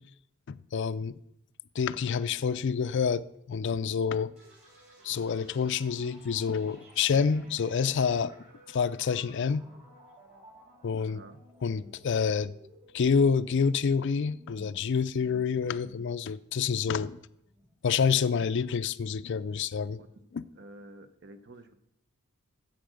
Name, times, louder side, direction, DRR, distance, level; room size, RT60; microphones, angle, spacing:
voice 1, 0.5-1.2 1.8-4.3 5.0-8.3 8.7-9.7 10.8-11.2 11.6-12.5 12.9-17.2 17.8-20.0 20.3-20.4, left 6 dB, 55° left, 0.4 m, -28 dB
sound 1, 4.4-18.0, equal, 35° right, 3.7 m, -56 dB
voice 2, 11.0-11.4 20.0-20.3 20.5-21.7, right 1 dB, 55° right, 0.9 m, -50 dB
10.0 x 7.9 x 6.4 m
head